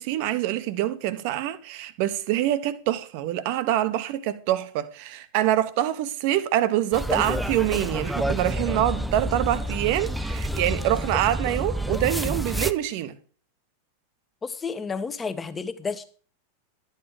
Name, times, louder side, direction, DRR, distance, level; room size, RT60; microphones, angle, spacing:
voice 1, 0.0-13.2, right 13 dB, 45° right, 1.1 m, -25 dB
sound 1, 6.9-12.7, right 1 dB, ahead, 0.7 m, -28 dB
voice 2, 14.4-16.0, left 5 dB, 15° left, 1.3 m, -31 dB
12.5 x 9.3 x 5.0 m
figure-of-eight pair, 90°, 0 cm